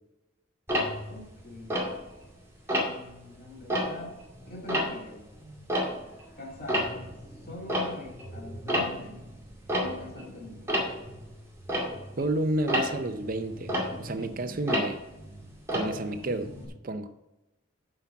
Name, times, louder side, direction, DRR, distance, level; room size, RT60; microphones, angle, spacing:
Tick-tock, 0.7-2.3 2.7-3.1 3.5-6.3 6.5-16.7, equal, 15° right, 2.2 m, -32 dB
voice 1, 1.1-1.8 2.8-4.2 4.5-5.3 6.4-7.1 7.4-9.2 9.7-10.7, left 2 dB, 50° left, -1 dB, 2.3 m, -44 dB
voice 2, 12.2-13.7 14.0-15.0 15.7-16.5 16.8-17.1, right 1 dB, 45° right, 9 dB, 0.6 m, -30 dB
7.7 x 5.8 x 7.1 m, 0.98 s
head